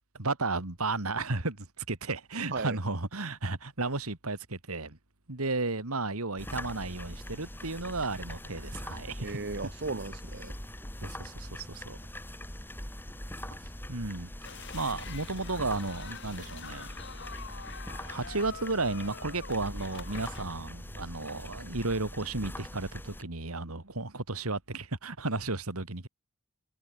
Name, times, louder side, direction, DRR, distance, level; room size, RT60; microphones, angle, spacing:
voice 1, 0.1-5.0 5.3-9.3 11.0-12.0 13.9-14.3 14.7-16.9 18.1-26.1, right 3 dB, 75° right, 2.6 m, -33 dB
sound 1, 6.4-23.2, left 1 dB, 10° left, 4.1 m, -42 dB
voice 2, 9.2-10.5, right 3 dB, 50° right, 1.1 m, -35 dB
sound 2, 14.4-20.4, left 6 dB, 50° left, 2.6 m, -46 dB
head